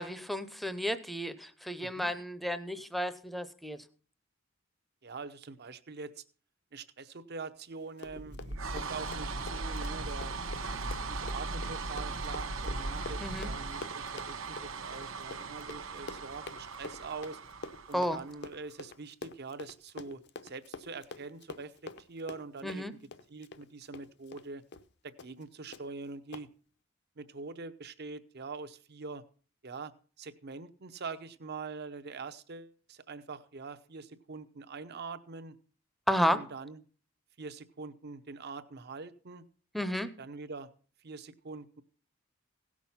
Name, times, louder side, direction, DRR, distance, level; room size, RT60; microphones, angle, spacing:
voice 1, 0.0-3.8 13.2-13.5 17.9-18.2 22.6-22.9 36.1-36.4 39.7-40.1, equal, ahead, 11 dB, 0.7 m, -32 dB
voice 2, 1.8-2.1 5.0-6.2 6.7-8.4 8.7-10.3 11.1-17.4 17.9-22.9 23.3-24.6 25.0-26.5 27.2-29.2 29.6-29.9 30.2-35.6 36.3-36.8 37.4-39.4 40.2-40.7 41.0-41.8, right 4 dB, 55° right, 11 dB, 0.8 m, -44 dB
Run, 7.8-24.5 24.7-24.9 25.2-25.4 25.7-25.8 26.3-26.5, left 3 dB, 60° left, 0.7 m, -46 dB
sound 1, 8.1-18.6, right 3 dB, 75° right, 1.0 m, -38 dB
16.5 x 6.2 x 5.6 m, 0.41 s
head